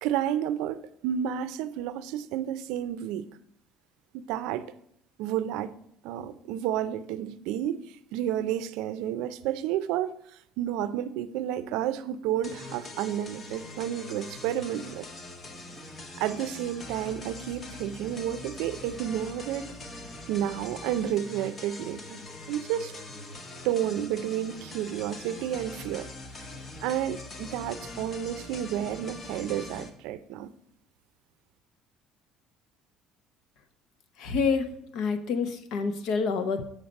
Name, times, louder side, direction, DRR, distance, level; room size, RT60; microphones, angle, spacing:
voice 1, 0.0-3.3 4.1-4.7 5.2-5.7 6.0-10.1 10.6-15.1 16.2-19.7 20.3-22.2 22.5-22.9 23.6-26.1 26.8-30.5, right 11 dB, 75° right, 0.5 m, -31 dB
sound 1, 12.4-29.9, left 2 dB, 25° left, 0.8 m, -43 dB
voice 2, 34.2-34.7 34.9-36.6, left 5 dB, 55° left, 0.8 m, -27 dB
7.2 x 6.4 x 5.2 m
cardioid pair, 165°, 0 cm